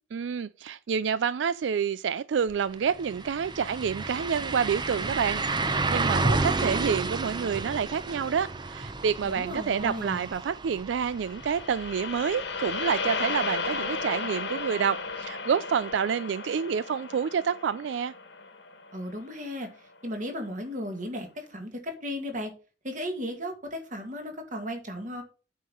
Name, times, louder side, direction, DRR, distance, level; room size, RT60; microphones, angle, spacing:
voice 1, 0.1-18.1, right 7 dB, 90° right, 0.4 m, -28 dB
sound 1, 2.5-2.6 2.9-12.7 13.1-13.2 15.9-16.0, right 3 dB, 25° right, 0.7 m, -31 dB
voice 2, 9.2-10.2 18.9-19.7 20.0-22.5 22.8-25.2, equal, 45° right, 2.2 m, -35 dB
sound 2, 11.2-19.5, left 4 dB, 80° left, 1.6 m, -34 dB
8.5 x 5.5 x 6.3 m
head